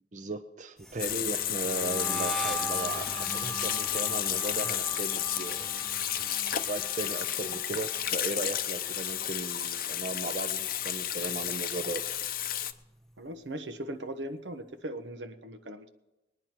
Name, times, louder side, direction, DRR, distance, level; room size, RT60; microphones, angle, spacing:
voice 1, 0.1-5.7 6.4-12.2, right 2 dB, 45° right, 8 dB, 0.7 m, -37 dB
sound 1, 0.8-10.0 10.3-10.7 11.0-12.6, right 2 dB, ahead, 0.6 m, -41 dB
Water tap faucet / Sink (filling or washing), 1.0-12.7, left 11 dB, 50° left, 0.6 m, -32 dB
voice 2, 13.2-15.9, right 1 dB, 85° right, 7 dB, 1.1 m, -39 dB
20.5 x 10.0 x 4.5 m, 1.0 s
head